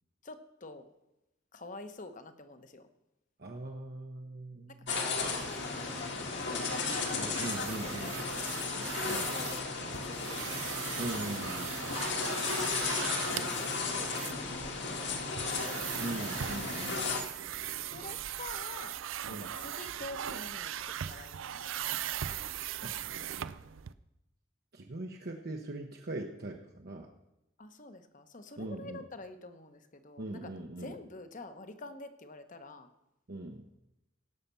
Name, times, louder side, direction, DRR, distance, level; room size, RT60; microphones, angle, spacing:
voice 1, 0.2-0.8 1.5-2.9 4.7-10.4 12.3-16.0 17.8-19.0 19.3-22.0 27.6-30.5 30.8-32.9, left 2 dB, 40° left, 9 dB, 1.0 m, -48 dB
voice 2, 3.4-4.9 7.1-8.2 9.0-9.3 11.0-12.2 13.3-13.5 16.0-17.1 19.3-19.5 22.8-23.0 24.7-27.1 28.6-29.0 30.2-30.9 33.3-33.6, right 2 dB, 55° right, 2 dB, 0.9 m, -41 dB
sound 1, 4.9-17.2, left 4 dB, 60° left, 1.8 m, -35 dB
sound 2, 5.2-23.9, right 10 dB, 85° right, 0.5 m, -40 dB
17.0 x 5.8 x 6.8 m, 0.91 s
head